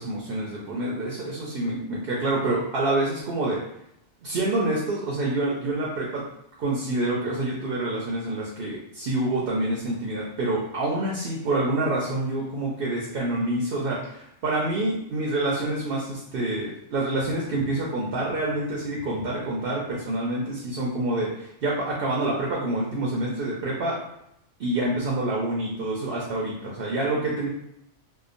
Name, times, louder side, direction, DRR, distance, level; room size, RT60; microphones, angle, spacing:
voice 1, 0.0-3.6 4.2-6.2 6.6-24.0 24.6-27.5, right 2 dB, 60° right, -3 dB, 0.6 m, -27 dB
2.8 x 2.2 x 2.5 m, 0.76 s
omnidirectional pair, 1.4 m